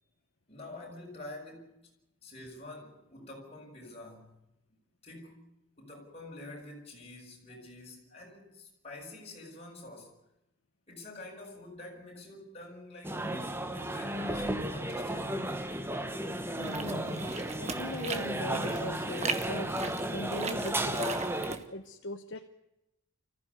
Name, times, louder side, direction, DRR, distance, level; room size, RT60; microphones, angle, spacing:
voice 1, 0.5-1.8 2.2-4.4 5.0-5.5 5.8-10.2 10.9-13.3 13.7-15.7, left 2 dB, 30° left, 6.4 m, -47 dB
sound 1, 13.0-21.6, right 1 dB, 10° right, 1.3 m, -34 dB
voice 2, 16.6-19.7 20.1-21.2 21.7-22.4, left 2 dB, 60° left, 1.1 m, -40 dB
sound 2, 16.6-21.6, right 4 dB, 30° right, 1.5 m, -39 dB
24.5 x 15.0 x 9.6 m
head